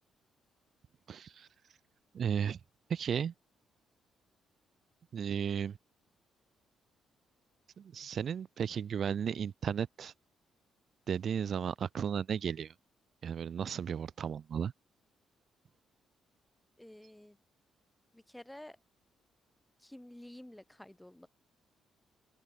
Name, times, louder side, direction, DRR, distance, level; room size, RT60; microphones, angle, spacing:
voice 1, 1.1-1.5 2.1-2.6 2.9-3.3 5.1-5.8 7.8-10.1 11.1-12.7 13.2-14.7, right 8 dB, 55° right, 3.0 m, -34 dB
voice 2, 16.8-17.4 18.1-18.8 19.8-21.3, left 1 dB, 5° left, 4.9 m, -51 dB
open air
cardioid pair, 90°, 0 cm